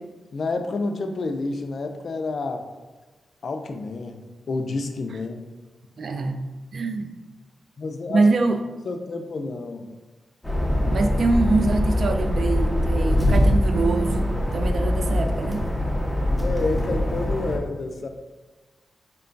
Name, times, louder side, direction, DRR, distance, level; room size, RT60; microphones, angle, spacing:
voice 1, 0.3-2.7 3.4-5.5 7.8-8.2 8.8-9.9 16.4-18.1, left 3 dB, 55° left, 6 dB, 0.4 m, -29 dB
voice 2, 6.0-6.4 6.7-7.1 8.1-8.6 10.9-15.7, right 3 dB, 55° right, 6 dB, 0.3 m, -24 dB
sound 1, 10.4-17.6, left 1 dB, ahead, 0.7 m, -23 dB
4.4 x 2.2 x 3.8 m, 1.2 s
wide cardioid pair, 130°, 0 cm